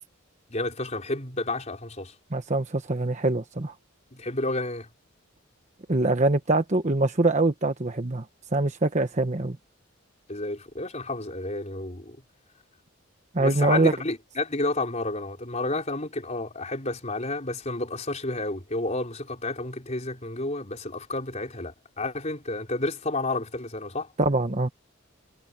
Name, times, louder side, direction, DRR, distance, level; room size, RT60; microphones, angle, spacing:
voice 1, 0.5-2.1 4.1-4.9 10.3-12.2 13.4-24.1, left 2 dB, 35° left, 4.2 m, -31 dB
voice 2, 2.3-3.7 5.9-8.2 8.5-9.6 13.3-13.9 24.2-24.7, right 2 dB, 35° right, 1.1 m, -23 dB
head